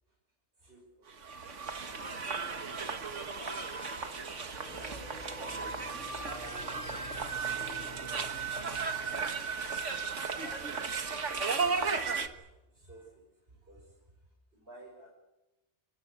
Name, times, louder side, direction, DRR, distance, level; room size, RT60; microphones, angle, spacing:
voice 1, 0.6-1.3 1.9-2.6 3.0-4.2 6.2-9.7 10.1-10.7 11.1-14.0 14.5-15.1, right 1 dB, 55° right, -3 dB, 6.7 m, -54 dB
sound 1, 1.1-12.3, right 5 dB, 85° right, 1.8 m, -35 dB
sound 2, 4.6-10.4, left 1 dB, 40° left, 6.2 m, -50 dB
29.0 x 20.0 x 8.3 m, 0.99 s
omnidirectional pair, 1.2 m